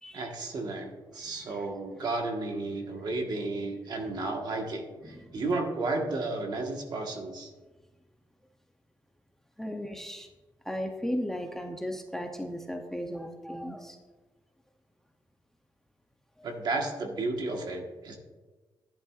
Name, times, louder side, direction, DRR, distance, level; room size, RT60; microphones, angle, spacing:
voice 1, 0.1-7.5 9.7-9.8 16.4-18.2, right 2 dB, 55° right, 2 dB, 1.4 m, -33 dB
voice 2, 1.2-1.7 5.0-5.4 9.6-10.3 10.6-14.0 16.4-16.5, equal, 5° left, 3 dB, 0.6 m, -36 dB
11.5 x 10.5 x 2.4 m, 1.2 s
wide cardioid pair, 155°, 9 cm